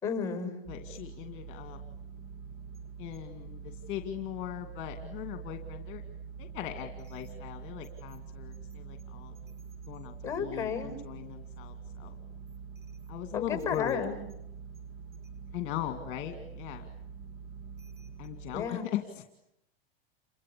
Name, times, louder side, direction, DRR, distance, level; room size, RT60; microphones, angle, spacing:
voice 1, 0.0-0.5 10.2-11.0 13.3-14.1 18.5-18.9, left 6 dB, 10° left, 6 dB, 6.2 m, -32 dB
voice 2, 0.7-1.8 3.0-6.0 6.4-9.3 9.9-12.2 13.1-14.1 15.5-16.9 18.2-19.3, left 12 dB, 40° left, 6 dB, 2.2 m, -39 dB
sound 1, 0.7-18.7, right 6 dB, 30° right, 2.3 m, -45 dB
28.5 x 24.5 x 8.5 m, 0.82 s
supercardioid pair, 140°, 29 cm